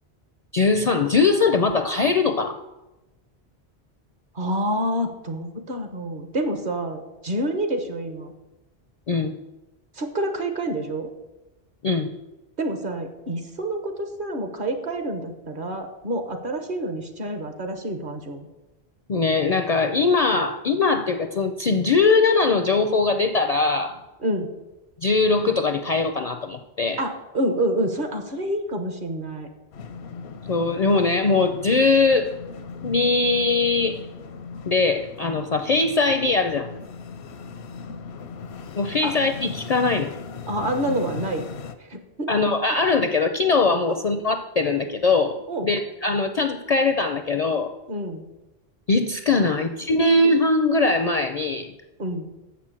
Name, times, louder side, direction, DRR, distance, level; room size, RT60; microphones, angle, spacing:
voice 1, 0.5-2.6 9.1-9.3 11.8-12.1 19.1-24.0 25.0-27.0 30.5-32.3 32.8-34.0 34.7-36.7 38.8-40.1 42.3-47.7 48.9-51.7, left 3 dB, 50° left, 7 dB, 0.5 m, -21 dB
voice 2, 4.3-8.3 10.0-11.1 12.6-18.5 24.2-24.5 27.0-29.5 39.0-39.1 40.5-41.5 41.9-42.3 43.9-44.0 45.5-45.7 47.9-48.2 52.0-52.3, right 1 dB, 55° right, 6 dB, 1.2 m, -28 dB
sound 1, 29.7-41.8, left 5 dB, 85° left, 0.9 m, -38 dB
7.0 x 6.0 x 7.3 m, 1.0 s
omnidirectional pair, 1.1 m